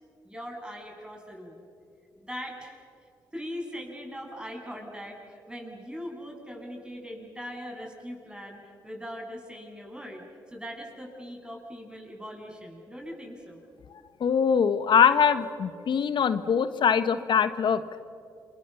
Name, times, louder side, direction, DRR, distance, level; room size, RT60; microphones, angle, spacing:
voice 1, 0.2-1.6 2.2-2.8 3.3-10.2 10.5-13.6, equal, 10° right, 1 dB, 7.7 m, -40 dB
voice 2, 14.2-17.8, left 7 dB, 65° left, 12 dB, 1.2 m, -22 dB
28.0 x 24.5 x 7.1 m, 2.4 s
supercardioid pair, 45°, 9 cm